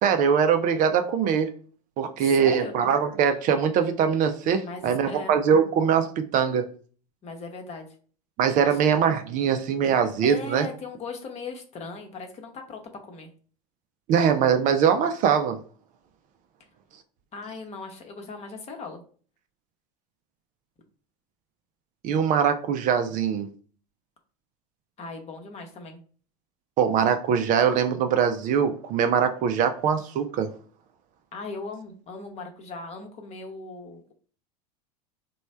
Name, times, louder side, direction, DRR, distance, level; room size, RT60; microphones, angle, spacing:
voice 1, 0.0-1.5 2.0-6.6 8.4-10.7 14.1-15.6 22.0-23.5 26.8-30.5, right 7 dB, 40° right, 7 dB, 0.4 m, -22 dB
voice 2, 2.2-2.7 4.6-5.3 7.2-7.9 8.6-8.8 10.2-13.3 17.3-19.0 25.0-26.0 31.3-34.1, left 3 dB, 30° left, 4 dB, 0.9 m, -38 dB
3.1 x 2.3 x 4.1 m, 0.42 s
hypercardioid pair, 90°, 20 cm